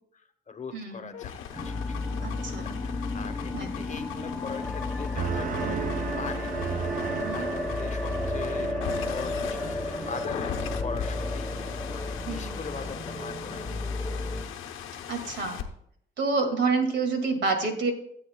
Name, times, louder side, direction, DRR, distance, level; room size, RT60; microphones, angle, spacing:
voice 1, 0.1-5.9 6.2-8.8 9.1-13.7, left 5 dB, 35° left, 8 dB, 1.1 m, -41 dB
voice 2, 0.7-1.1 2.2-2.7 3.5-3.8 7.3-7.5 12.3-12.5 15.1-15.6 16.2-17.9, right 4 dB, 65° right, 4 dB, 2.2 m, -28 dB
sound 1, 1.1-15.6, left 9 dB, 90° left, 1.0 m, -39 dB
sound 2, 1.5-14.5, left 2 dB, 5° left, 1.1 m, -33 dB
sound 3, 5.1-12.2 12.6-13.1, right 8 dB, 45° right, 0.4 m, -36 dB
17.0 x 8.0 x 2.3 m, 0.71 s
cardioid pair, 90°, 20 cm